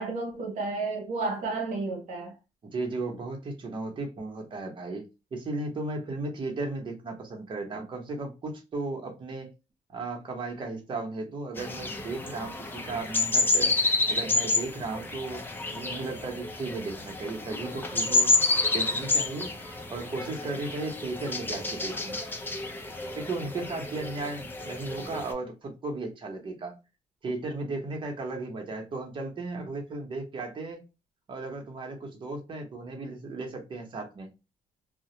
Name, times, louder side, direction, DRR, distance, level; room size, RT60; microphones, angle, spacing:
voice 1, 0.0-2.4, right 3 dB, 80° right, 0.6 m, -32 dB
voice 2, 2.6-5.0 5.3-9.5 9.9-13.7 14.1-15.5 15.7-18.3 18.7-19.6 19.9-22.2 23.1-26.8 27.2-30.8 31.3-34.3, right 3 dB, 45° right, 0.9 m, -35 dB
sound 1, 11.6-25.3, left 2 dB, 15° left, 0.5 m, -29 dB
2.2 x 2.1 x 2.8 m
cardioid pair, 100°, 12 cm